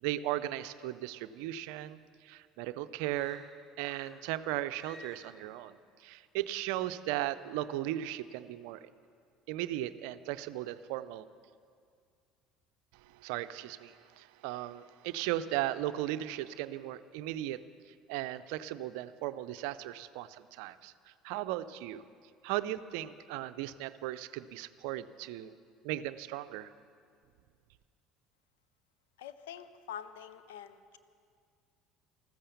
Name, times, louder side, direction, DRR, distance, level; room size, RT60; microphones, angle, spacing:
voice 1, 0.0-3.5 3.8-8.9 9.5-11.3 12.9-17.6 18.1-22.0 22.4-25.5 25.8-26.7, right 14 dB, 70° right, 13 dB, 0.5 m, -37 dB
sound 1, 3.0-4.3 4.7-5.5, equal, 40° left, 2.9 m, -54 dB
voice 2, 29.2-31.0, left 9 dB, 75° left, 12 dB, 0.6 m, -45 dB
14.0 x 14.0 x 7.0 m, 2.2 s
hypercardioid pair, 65°, 0 cm